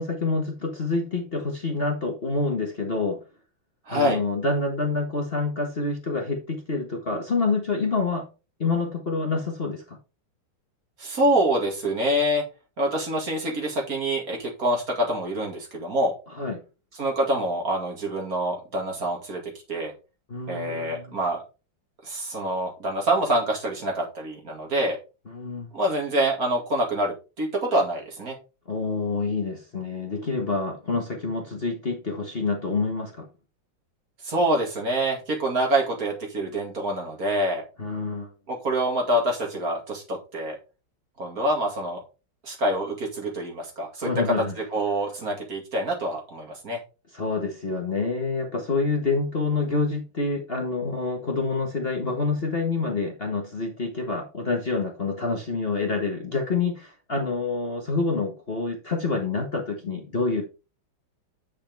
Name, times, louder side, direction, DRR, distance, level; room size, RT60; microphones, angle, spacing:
voice 1, 0.0-3.2 3.9-8.3 8.6-10.0 16.4-16.6 20.3-21.2 25.3-25.7 28.7-33.3 37.8-38.3 44.0-44.5 47.1-60.4, left 3 dB, 30° left, 1.5 m, -27 dB
voice 2, 3.9-4.2 11.0-12.4 12.8-16.1 17.0-19.4 19.7-19.9 20.5-21.4 22.0-25.0 25.7-28.3 34.2-37.6 38.5-40.6 41.2-42.0 42.4-44.1 44.7-46.8, right 1 dB, 45° right, 2.6 m, -26 dB
8.5 x 6.6 x 3.4 m
omnidirectional pair, 2.1 m